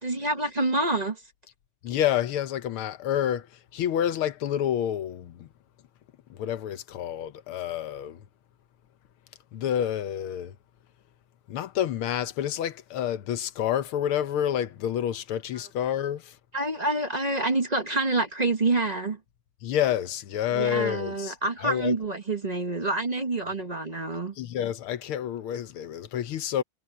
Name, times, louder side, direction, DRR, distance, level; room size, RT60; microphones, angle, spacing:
voice 1, 0.0-1.2 16.5-19.2 20.5-24.3, right 2 dB, 25° right, 0.9 m, -27 dB
voice 2, 1.8-3.5 3.7-5.5 6.3-8.2 9.5-10.5 11.5-16.3 19.6-21.4 21.6-21.9 24.4-26.6, left 10 dB, 75° left, 1.8 m, -28 dB
omnidirectional pair, 2.4 m